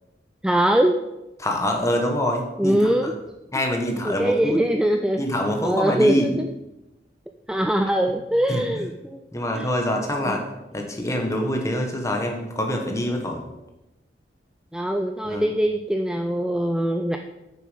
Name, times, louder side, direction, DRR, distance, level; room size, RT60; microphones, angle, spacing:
voice 1, 0.4-1.0 2.6-3.1 4.0-5.2 5.6-6.5 7.5-9.2 9.5-9.7 10.3-10.4 14.7-17.2, right 1 dB, 5° right, 5 dB, 0.4 m, -22 dB
voice 2, 1.4-2.9 3.5-4.6 5.2-6.3 8.5-8.8 9.3-10.5 10.7-13.4 15.2-15.5, left 1 dB, 15° left, 2 dB, 1.3 m, -25 dB
9.4 x 6.8 x 5.1 m, 0.99 s
head